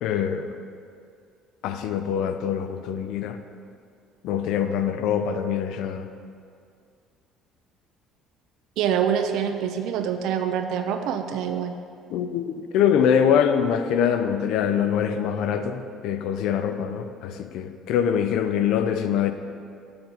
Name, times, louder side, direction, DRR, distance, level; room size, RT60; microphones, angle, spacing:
voice 1, 0.0-0.6 1.6-3.4 4.2-6.1 12.1-19.3, left 8 dB, 65° left, 9 dB, 0.4 m, -24 dB
voice 2, 8.8-11.7, right 8 dB, 65° right, 7 dB, 0.4 m, -25 dB
6.7 x 3.9 x 5.7 m, 2.3 s
cardioid pair, 170°, 0 cm